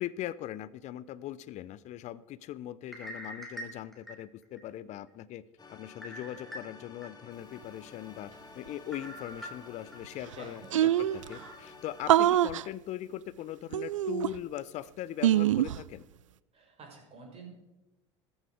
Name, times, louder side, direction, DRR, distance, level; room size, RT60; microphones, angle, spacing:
voice 1, 0.0-5.4 5.7-16.0, left 12 dB, 45° left, 18 dB, 0.7 m, -40 dB
sound 1, 2.8-4.6 5.1-5.2 6.0-7.1 7.5-7.6 8.9-10.0 10.4-10.5 11.3-11.6, equal, ahead, 5.4 m, -44 dB
sound 2, 5.6-12.3, left 4 dB, 25° left, 2.5 m, -52 dB
sound 3, 10.0-10.1 10.3-10.4 10.7-11.3 12.1-12.6 13.7-14.6 15.2-15.8, right 12 dB, 80° right, 0.4 m, -24 dB
voice 2, 10.4-10.8 16.5-17.6, right 4 dB, 40° right, 1 dB, 6.2 m, -49 dB
14.5 x 14.5 x 4.9 m, 1.0 s
figure-of-eight pair, 70°, 16 cm